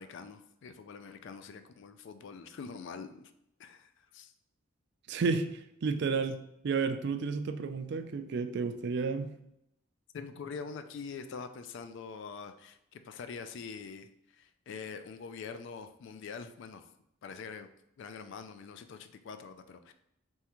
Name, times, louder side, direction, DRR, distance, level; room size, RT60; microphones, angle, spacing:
voice 1, 0.0-3.3 3.6-4.3 10.1-16.9 17.2-17.7 18.0-19.9, left 5 dB, 60° left, 9 dB, 0.3 m, -44 dB
voice 2, 5.1-9.4, right 4 dB, 55° right, 8 dB, 0.4 m, -32 dB
4.2 x 3.6 x 2.9 m, 0.81 s
head